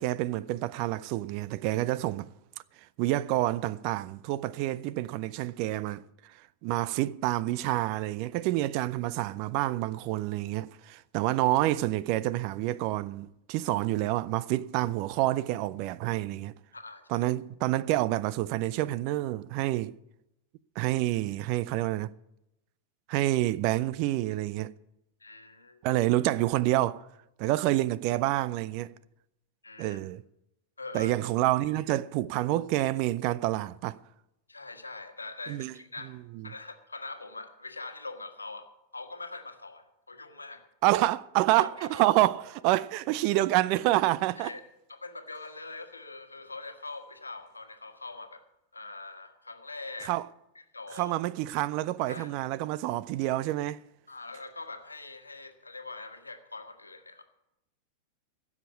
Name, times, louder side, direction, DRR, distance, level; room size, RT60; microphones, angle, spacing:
voice 1, 0.0-2.3 3.0-6.0 6.6-16.5 17.1-19.9 20.8-22.1 23.1-24.7 25.8-27.1 27.4-28.9 29.8-30.2 30.9-34.0 35.5-35.7 36.4-36.5 40.8-44.5 50.0-50.2 51.0-53.8, right 16 dB, 45° right, 0.4 m, -28 dB
voice 2, 16.7-17.2 25.2-25.8 29.6-30.0 30.8-31.1 34.5-36.2 36.4-38.7 38.9-40.6 41.6-42.0 44.4-44.6 44.9-48.4 48.7-50.1 50.5-51.1 52.1-52.3 54.1-57.2, left 3 dB, 80° left, 1.4 m, -43 dB
15.5 x 7.3 x 8.4 m
figure-of-eight pair, 90°, 0 cm